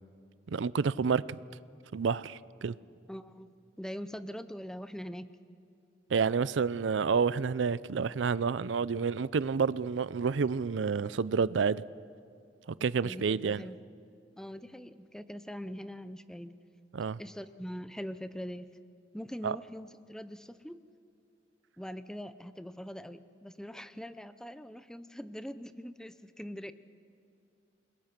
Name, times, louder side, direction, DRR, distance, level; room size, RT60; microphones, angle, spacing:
voice 1, 0.5-1.4 1.9-2.7 6.1-11.8 12.8-13.6 16.9-17.2 19.4-19.6, right 5 dB, 90° right, 0.5 m, -29 dB
voice 2, 3.1-5.3 13.0-13.8 14.4-16.6 17.2-18.7 19.1-20.8 21.8-26.7, equal, 5° left, 0.6 m, -42 dB
28.5 x 21.5 x 6.0 m
head